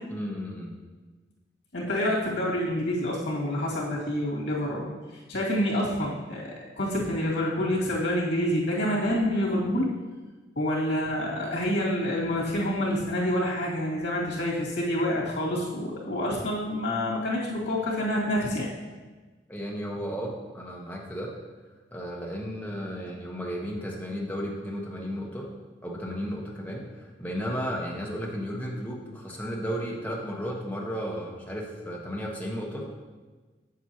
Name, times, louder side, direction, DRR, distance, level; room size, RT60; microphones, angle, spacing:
voice 1, 0.1-0.7 19.5-21.3 21.9-25.5 25.8-32.9, equal, 10° left, -2 dB, 1.0 m, -34 dB
voice 2, 1.7-4.9 5.3-9.9 10.6-18.7, left 1 dB, 80° left, -4 dB, 2.2 m, -27 dB
7.7 x 7.4 x 2.9 m, 1.3 s
head